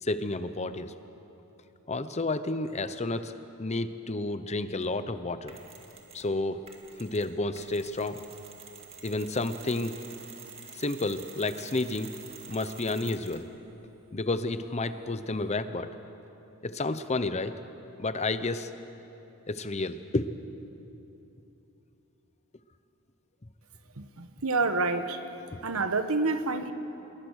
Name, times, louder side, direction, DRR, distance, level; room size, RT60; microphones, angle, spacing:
voice 1, 0.0-0.9 1.9-5.6 6.1-6.6 7.0-8.2 9.0-9.9 10.7-12.1 12.5-13.5 14.1-15.9 16.6-17.5 18.0-18.7 19.5-20.3 25.5-25.6, left 2 dB, 30° left, 11 dB, 0.8 m, -31 dB
Mechanisms, 5.5-6.3 6.7-13.5, right 5 dB, 25° right, 2.3 m, -48 dB
voice 2, 24.0-25.2 25.6-26.7, right 3 dB, 70° right, 9 dB, 1.3 m, -28 dB
27.5 x 21.5 x 6.5 m, 3.0 s
head